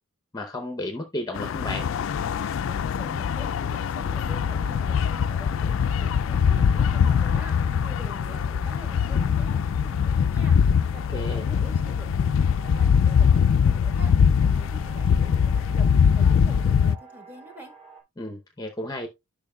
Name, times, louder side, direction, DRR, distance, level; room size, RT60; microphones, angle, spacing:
voice 1, 0.3-1.9 11.1-11.4 18.2-19.1, left 1 dB, 15° left, 0.7 m, -33 dB
sound 1, 1.3-17.0, left 7 dB, 65° left, 0.3 m, -22 dB
voice 2, 2.6-17.7, left 1 dB, 10° right, 1.3 m, -45 dB
sound 2, 4.1-18.0, right 5 dB, 25° right, 2.6 m, -48 dB
11.0 x 5.3 x 2.2 m
head